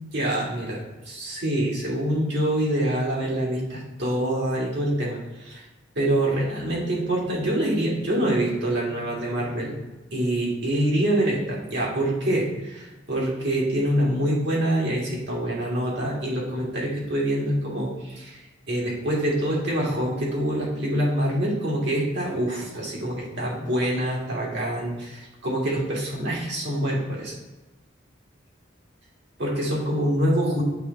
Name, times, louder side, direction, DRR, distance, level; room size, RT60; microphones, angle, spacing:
voice 1, 0.0-5.6 6.0-9.7 10.1-18.4 18.7-27.3 29.4-30.6, right 1 dB, 65° right, -4 dB, 2.1 m, -25 dB
8.2 x 3.4 x 4.0 m, 1.1 s
head